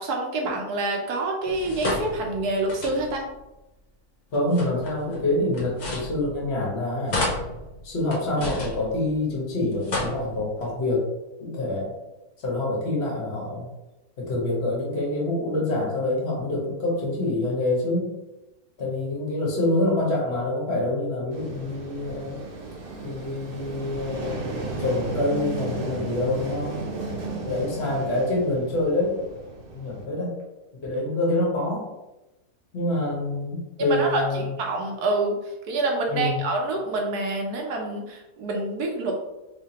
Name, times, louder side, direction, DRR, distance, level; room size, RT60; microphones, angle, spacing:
voice 1, 0.0-3.2 33.8-35.3 35.6-39.1, right 2 dB, 80° right, 1 dB, 1.3 m, -27 dB
sound 1, 1.5-3.4 4.3-6.7 7.1-9.4 9.7-10.7, left 2 dB, 65° left, 0.4 m, -32 dB
voice 2, 4.3-7.2 7.8-11.1 11.4-11.9 12.4-13.7 14.2-18.1 18.8-22.3 23.0-26.8 27.4-29.2 29.7-30.3 30.8-31.9 32.7-34.5 36.1-36.4, left 2 dB, 45° left, -3 dB, 1.3 m, -26 dB
sound 2, 21.3-30.0, right 3 dB, 50° right, 0.7 m, -34 dB
3.6 x 3.3 x 2.8 m, 0.99 s
omnidirectional pair, 1.7 m